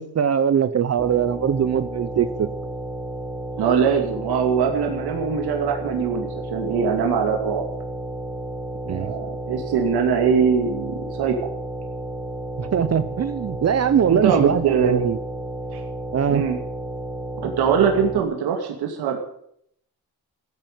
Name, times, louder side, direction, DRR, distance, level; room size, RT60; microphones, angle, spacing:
voice 1, 0.0-2.5 8.9-9.1 12.6-15.2 16.1-16.4, right 8 dB, 40° right, 12 dB, 0.8 m, -21 dB
sound 1, 1.0-18.2, right 1 dB, 10° right, 2.0 m, -32 dB
voice 2, 3.6-7.6 8.9-11.6 14.0-15.0 15.7-15.8 16.3-16.6 17.4-19.2, right 6 dB, 85° right, 2 dB, 2.6 m, -22 dB
15.5 x 9.0 x 9.3 m, 0.70 s
cardioid pair, 110°, 37 cm